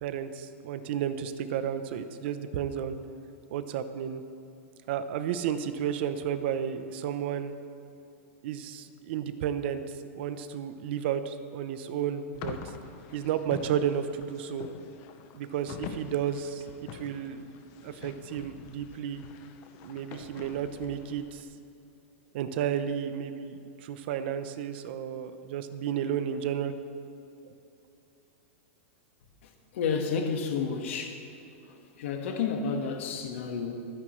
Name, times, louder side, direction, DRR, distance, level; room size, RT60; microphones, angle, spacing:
voice 1, 0.0-3.0 3.5-4.2 4.9-7.5 8.4-9.8 10.2-12.6 13.1-14.7 15.3-17.4 17.8-19.2 19.8-21.4 22.3-26.7, right 9 dB, 50° right, 11 dB, 0.8 m, -32 dB
sound 1, 12.3-21.4, left 7 dB, 35° left, 0.9 m, -45 dB
voice 2, 29.4-31.3 31.6-33.9, left 5 dB, 60° left, 4 dB, 1.6 m, -31 dB
26.5 x 9.7 x 3.2 m, 2.8 s
supercardioid pair, 160°, 7 cm